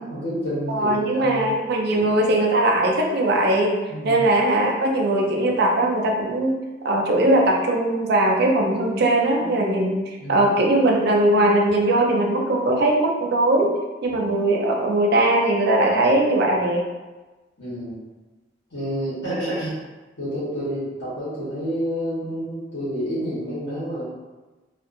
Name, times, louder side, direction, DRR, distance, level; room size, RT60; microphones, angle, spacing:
voice 1, 0.0-1.5 1.9-2.1 3.9-4.2 10.2-10.5 14.1-14.2 17.6-18.0 18.7-19.7 20.2-24.0, equal, 70° left, -11 dB, 1.1 m, -29 dB
voice 2, 0.7-3.7 4.0-6.6 6.8-13.7 14.0-16.8, right 1 dB, 60° right, 0 dB, 0.4 m, -20 dB
2.5 x 2.4 x 2.5 m, 1.2 s
head